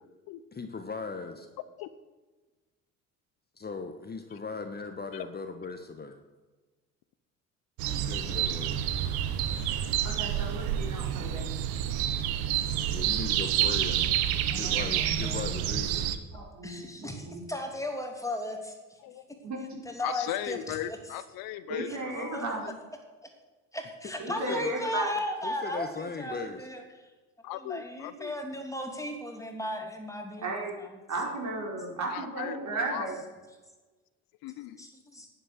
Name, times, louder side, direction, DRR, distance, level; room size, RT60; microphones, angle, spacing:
voice 1, 0.5-1.5 3.6-6.2 7.9-8.8 12.9-14.1 14.5-16.1 24.3-24.8 25.4-26.7, left 4 dB, 25° left, 7 dB, 1.3 m, -38 dB
sound 1, 7.8-16.2, right 11 dB, 70° right, 1.1 m, -29 dB
voice 2, 9.6-11.5 16.3-17.5 19.4-19.8 21.7-22.7 24.2-25.1 30.4-33.2, right 2 dB, 45° right, -1 dB, 4.8 m, -35 dB
voice 3, 14.3-15.6 16.6-18.7 19.8-21.0 21.9-22.0 22.3-22.4 23.7-26.8 27.5-30.5 30.8-30.9 34.8-35.3, left 1 dB, 10° left, 3 dB, 2.9 m, -36 dB
voice 4, 20.0-22.7 27.4-28.3 32.1-32.6 32.9-33.1 34.4-34.9, left 13 dB, 60° left, 14 dB, 0.8 m, -37 dB
11.0 x 9.1 x 6.7 m, 1.3 s
hypercardioid pair, 70°, 39 cm